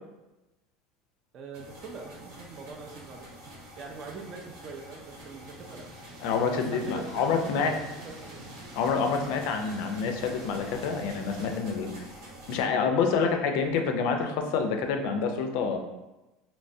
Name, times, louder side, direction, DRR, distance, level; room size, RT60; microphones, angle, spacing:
voice 1, 1.3-3.4 3.8-5.9 6.5-8.5 13.2-13.6, right 4 dB, 30° right, 2 dB, 0.4 m, -43 dB
sound 1, 1.5-12.6, right 1 dB, 75° right, 1.2 m, -48 dB
sound 2, 2.1-11.6, equal, 55° right, 0.8 m, -49 dB
voice 2, 6.2-7.8 8.7-12.1 12.5-15.8, left 5 dB, 55° left, 5 dB, 0.4 m, -27 dB
3.2 x 2.9 x 2.6 m, 1.0 s
cardioid pair, 175°, 0 cm